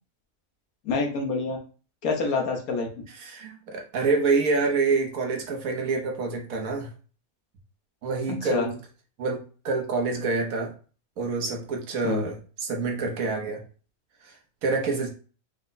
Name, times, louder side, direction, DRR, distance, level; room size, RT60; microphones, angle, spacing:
voice 1, 0.8-1.6 2.0-2.9 8.3-8.7 12.0-12.2, left 4 dB, 85° left, 1 dB, 1.4 m, -27 dB
voice 2, 3.1-6.9 8.0-8.8 9.2-10.7 11.2-13.6 14.2-14.4 14.6-15.1, right 4 dB, 75° right, 2 dB, 1.3 m, -27 dB
5.0 x 2.1 x 3.9 m, 0.39 s
omnidirectional pair, 1.5 m